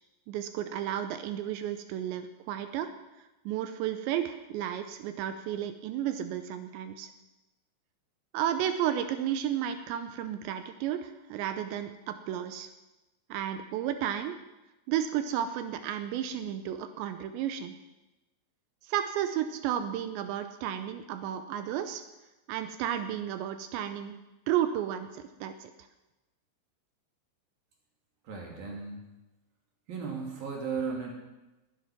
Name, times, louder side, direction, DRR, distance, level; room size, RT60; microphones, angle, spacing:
voice 1, 0.3-2.9 3.5-7.1 8.3-12.7 13.3-14.4 14.9-17.8 18.8-22.0 22.5-24.1 24.5-25.7, right 10 dB, 80° right, 9 dB, 2.7 m, -32 dB
voice 2, 28.2-29.0 29.9-31.1, right 5 dB, 50° right, 0 dB, 3.7 m, -35 dB
20.5 x 11.0 x 6.0 m, 1.0 s
omnidirectional pair, 5.8 m